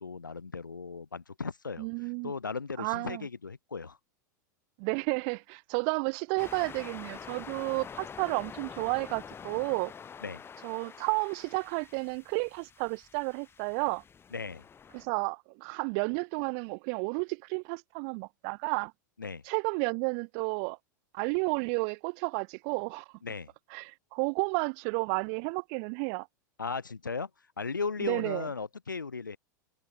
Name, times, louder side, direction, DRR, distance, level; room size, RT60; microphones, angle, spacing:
voice 1, 0.0-1.9 2.2-4.0 10.2-10.4 14.3-14.6 19.2-19.4 23.2-23.5 26.6-27.3 27.6-29.4, left 4 dB, 90° left, 2.2 m, -36 dB
voice 2, 1.8-2.3 2.8-3.3 4.8-9.9 10.6-14.0 14.9-18.9 19.4-20.8 21.1-23.1 23.7-26.3 28.0-28.5, right 40 dB or more, 50° right, 1.3 m, -32 dB
sound 1, 6.4-15.1, left 7 dB, 25° left, 4.0 m, -47 dB
hypercardioid pair, 90°, 10 cm